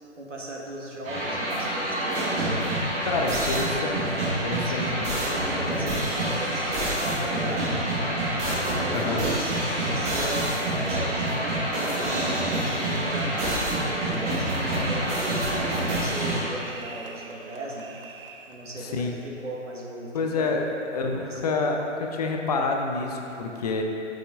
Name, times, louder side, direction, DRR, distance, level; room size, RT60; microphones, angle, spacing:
voice 1, 0.2-2.7 3.2-3.5 4.5-11.6 11.9-18.2 18.5-20.7 21.2-21.7, right 1 dB, 80° right, -3 dB, 1.6 m, -37 dB
sound 1, 1.0-16.4, right 1 dB, 20° right, 1.8 m, -27 dB
voice 2, 3.1-5.1 8.9-9.2 18.8-19.2 20.1-20.7 20.9-23.8, left 3 dB, 35° left, 2 dB, 0.7 m, -28 dB
sound 2, 9.7-18.6, right 3 dB, 50° right, 0.7 m, -42 dB
sound 3, 11.6-13.6, right 3 dB, ahead, 0.8 m, -40 dB
9.8 x 8.4 x 2.5 m, 2.8 s
figure-of-eight pair, 135°, 36 cm